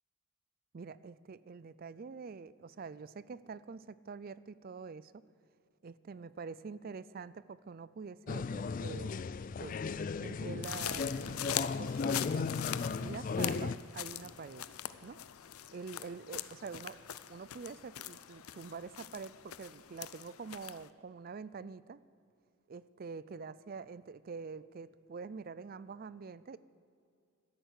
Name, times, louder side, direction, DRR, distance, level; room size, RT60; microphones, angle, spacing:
voice 1, 0.7-5.2 5.8-9.2 9.6-9.8 10.2-12.5 13.0-14.7 15.0-15.2 15.7-17.0 17.3-22.0 22.7-26.6, right 5 dB, 40° right, 18 dB, 0.4 m, -46 dB
sound 1, 8.3-13.7, left 5 dB, 40° left, 0.3 m, -36 dB
sound 2, 10.6-20.9, left 12 dB, 85° left, 0.6 m, -42 dB
13.0 x 11.0 x 8.0 m, 2.5 s
head